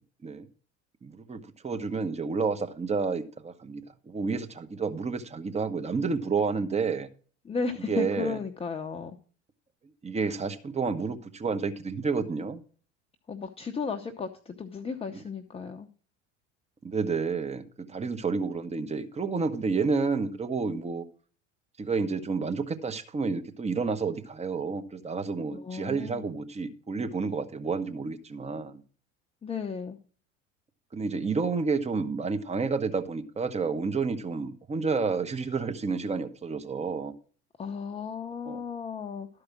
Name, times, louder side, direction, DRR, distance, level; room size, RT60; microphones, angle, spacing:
voice 1, 1.0-7.1 7.9-8.4 10.0-12.6 16.8-17.6 17.9-21.0 21.8-28.8 30.9-37.1 38.5-38.6, right 4 dB, 20° right, 8 dB, 1.0 m, -30 dB
voice 2, 7.4-9.2 13.3-15.9 25.5-26.3 29.4-30.0 37.6-39.3, left 5 dB, 15° left, 4 dB, 0.8 m, -34 dB
12.5 x 4.9 x 6.0 m, 0.42 s
figure-of-eight pair, 70°, 37 cm